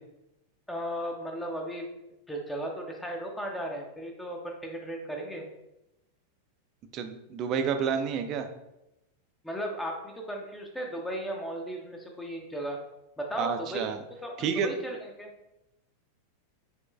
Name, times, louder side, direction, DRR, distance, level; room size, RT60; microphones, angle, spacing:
voice 1, 0.7-1.9 2.3-5.4 9.4-12.8 13.2-13.8 14.2-15.3, equal, 5° left, 1 dB, 0.6 m, -36 dB
voice 2, 6.9-8.5 13.4-14.0 14.4-14.7, right 7 dB, 35° right, 7 dB, 0.4 m, -29 dB
5.2 x 3.0 x 2.3 m, 0.90 s
figure-of-eight pair, 90°, 0 cm